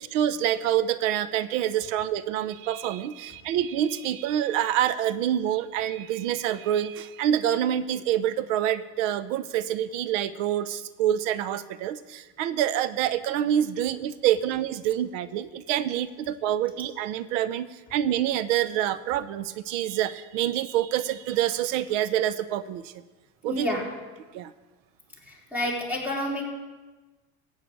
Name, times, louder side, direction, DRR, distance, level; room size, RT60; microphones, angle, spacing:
voice 1, 0.0-22.9 23.4-23.7 24.3-24.5, right 11 dB, 90° right, 14 dB, 0.7 m, -27 dB
voice 2, 23.5-24.0 25.2-26.4, left 1 dB, 5° right, -3 dB, 4.0 m, -29 dB
15.5 x 5.8 x 8.7 m, 1.2 s
cardioid pair, 130°, 37 cm